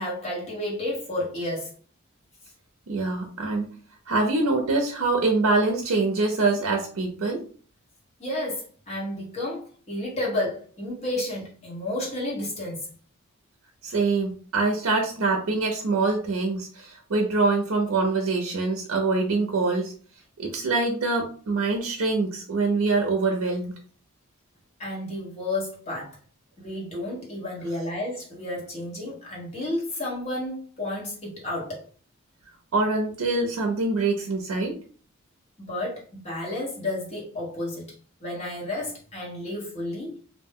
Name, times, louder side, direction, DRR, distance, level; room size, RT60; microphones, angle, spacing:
voice 1, 0.0-1.7 8.2-12.9 24.8-26.2 26.6-31.8 35.6-37.9 38.2-40.2, left 1 dB, 30° left, 1.1 m, -31 dB
voice 2, 2.9-3.7 4.1-7.4 13.8-19.9 20.4-23.8 32.7-34.8, right 3 dB, 75° right, 0.5 m, -24 dB
2.6 x 2.1 x 3.5 m
head